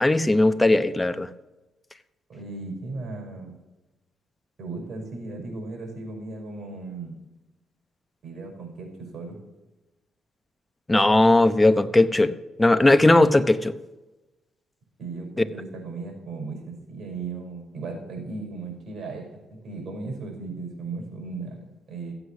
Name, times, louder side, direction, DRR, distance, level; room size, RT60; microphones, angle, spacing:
voice 1, 0.0-1.3 10.9-12.3 12.6-13.7, left 2 dB, 15° left, 11 dB, 0.8 m, -18 dB
voice 2, 2.3-3.6 4.6-7.2 8.2-9.4 15.0-22.1, right 3 dB, 55° right, 2 dB, 5.5 m, -36 dB
15.0 x 8.1 x 5.9 m, 1.1 s
cardioid pair, 90°, 0 cm